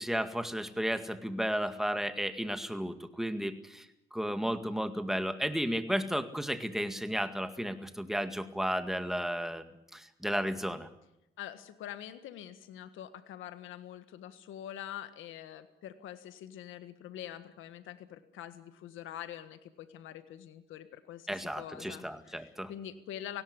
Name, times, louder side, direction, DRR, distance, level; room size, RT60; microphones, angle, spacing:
voice 1, 0.0-3.9 4.1-10.9 21.3-22.7, equal, ahead, 8 dB, 2.0 m, -33 dB
voice 2, 11.4-23.4, left 11 dB, 85° left, 11 dB, 1.5 m, -45 dB
18.5 x 17.0 x 9.8 m, 0.86 s
cardioid pair, 90°, 20 cm